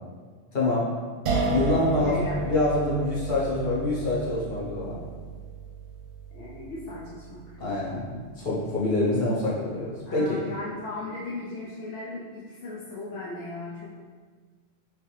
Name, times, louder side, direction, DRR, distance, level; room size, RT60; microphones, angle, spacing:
voice 1, 0.5-0.9 1.5-5.0 7.6-10.4, left 2 dB, 50° left, -7 dB, 1.1 m, -26 dB
sound 1, 1.3-8.2, right 4 dB, 60° right, 0.8 m, -32 dB
voice 2, 1.9-2.4 6.3-7.6 10.1-13.9, left 2 dB, 70° left, -6 dB, 0.9 m, -37 dB
3.2 x 3.2 x 3.2 m, 1.5 s
omnidirectional pair, 1.3 m